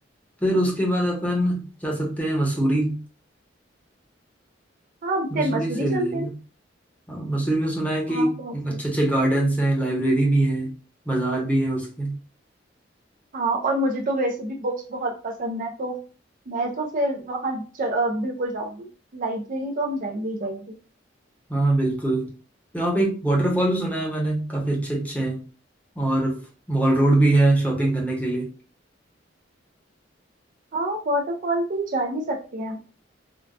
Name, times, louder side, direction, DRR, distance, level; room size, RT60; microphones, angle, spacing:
voice 1, 0.4-3.0 5.3-6.3 7.1-10.7 11.1-12.2 21.5-22.3 22.7-25.4 26.0-26.4 26.7-28.5, right 1 dB, 10° left, -1 dB, 0.9 m, -23 dB
voice 2, 5.0-6.3 8.1-8.8 13.3-16.0 16.5-20.6 30.7-32.8, right 1 dB, 45° right, 2 dB, 0.5 m, -27 dB
3.8 x 2.2 x 2.3 m, 0.36 s
head